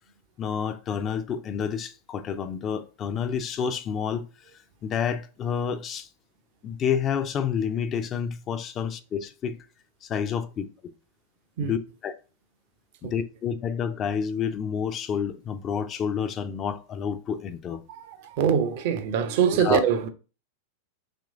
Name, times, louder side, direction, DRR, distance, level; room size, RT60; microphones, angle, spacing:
voice 1, 0.4-4.3 4.8-6.1 6.6-9.6 10.0-10.7 11.6-12.1 13.0-17.8 19.6-19.8, left 7 dB, 30° left, 0.4 m, -29 dB
voice 2, 17.9-20.1, right 7 dB, 50° right, 0.5 m, -24 dB
2.9 x 2.6 x 3.5 m
figure-of-eight pair, 90°, 0 cm